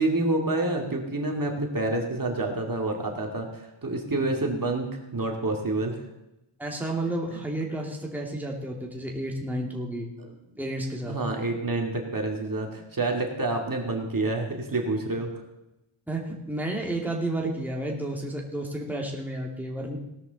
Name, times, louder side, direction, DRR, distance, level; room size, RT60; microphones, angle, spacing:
voice 1, 0.0-6.0 10.2-10.3 11.0-15.3 17.4-17.5, right 2 dB, 40° right, 1 dB, 2.3 m, -28 dB
voice 2, 6.6-10.1 10.6-11.2 16.1-20.0, right 1 dB, 5° right, -1 dB, 2.3 m, -31 dB
18.0 x 12.5 x 4.0 m, 0.93 s
wide cardioid pair, 115°, 49 cm